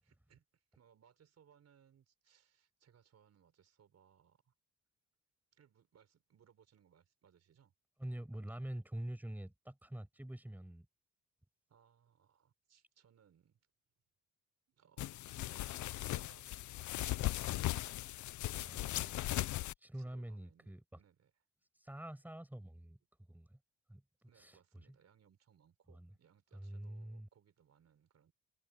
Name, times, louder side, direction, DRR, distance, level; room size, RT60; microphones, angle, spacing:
voice 1, 0.0-4.5 5.5-7.7 11.7-13.7 14.7-15.3 16.0-18.0 19.9-21.3 24.3-28.3, right 8 dB, 60° right, 5.5 m, -68 dB
voice 2, 8.0-10.9 18.5-19.1 19.8-20.8 21.8-23.0 23.3-23.6 23.9-24.0 24.4-24.8 25.9-26.1 26.5-27.3, right 1 dB, 5° right, 5.9 m, -46 dB
sound 1, 15.0-19.7, left 16 dB, 75° left, 0.7 m, -38 dB
cardioid pair, 90°, 30 cm